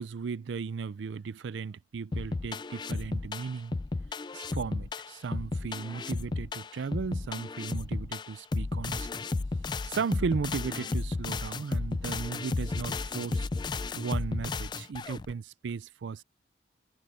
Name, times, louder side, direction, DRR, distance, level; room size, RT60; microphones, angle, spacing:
voice 1, 0.0-3.8 4.3-9.1 9.9-13.5 13.9-16.2, right 5 dB, 90° right, 0.4 m, -36 dB
sound 1, 2.1-15.3, left 3 dB, 25° left, 0.4 m, -33 dB
head